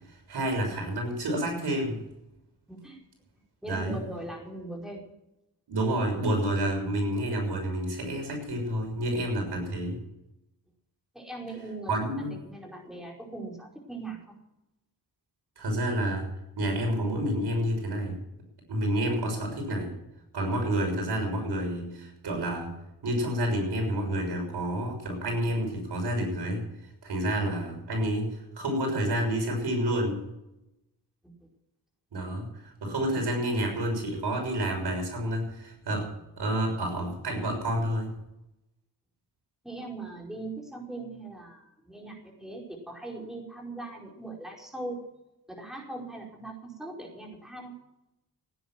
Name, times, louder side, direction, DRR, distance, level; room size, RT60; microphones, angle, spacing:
voice 1, 0.1-2.0 3.7-4.0 5.7-10.0 11.9-12.3 15.6-16.3 16.6-18.2 18.7-19.9 20.3-22.7 23.0-26.6 27.0-30.2 32.1-36.1 36.4-38.2, right 1 dB, 75° right, 2 dB, 6.4 m, -29 dB
voice 2, 2.7-3.0 3.6-5.0 11.1-11.9 12.4-14.2 39.6-45.1 45.5-47.7, right 2 dB, ahead, -1 dB, 5.0 m, -40 dB
17.0 x 10.0 x 7.6 m, 0.91 s
cardioid pair, 80°, 40 cm